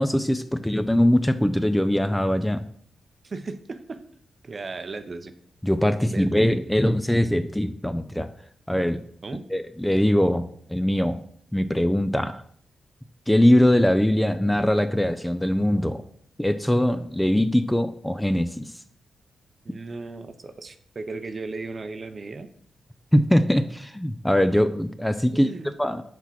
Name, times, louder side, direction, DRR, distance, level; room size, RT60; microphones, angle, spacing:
voice 1, 0.0-2.6 5.6-8.3 8.7-9.0 9.5-11.2 11.5-12.4 13.3-16.0 16.4-18.7 23.1-25.5 25.8-26.0, left 1 dB, 5° left, 11 dB, 0.4 m, -22 dB
voice 2, 3.2-4.0 4.4-5.3 6.0-6.4 9.2-9.4 19.6-22.5 25.3-25.7, right 3 dB, 40° right, 10 dB, 0.6 m, -36 dB
5.9 x 4.4 x 5.9 m, 0.63 s
cardioid pair, 90°, 0 cm